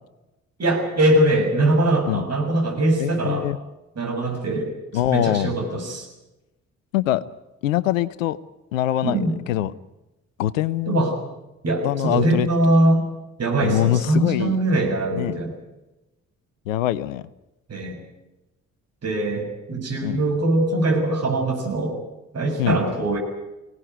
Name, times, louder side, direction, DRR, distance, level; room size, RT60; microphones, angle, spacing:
voice 1, 0.6-3.5 4.0-4.7 5.1-6.1 9.0-9.3 10.9-11.1 11.6-13.0 13.4-15.5 17.7-18.0 19.0-22.0 22.3-23.2, right 1 dB, 40° right, 2 dB, 7.2 m, -22 dB
voice 2, 3.0-3.6 4.9-5.5 6.9-7.2 7.6-8.4 8.7-9.2 9.5-9.7 10.4-11.1 11.8-12.5 13.6-14.6 15.1-15.3 16.7-17.2 20.0-20.2 22.6-22.8, left 13 dB, 75° left, 19 dB, 0.7 m, -23 dB
24.0 x 17.5 x 9.3 m, 1.0 s
figure-of-eight pair, 40°, 39 cm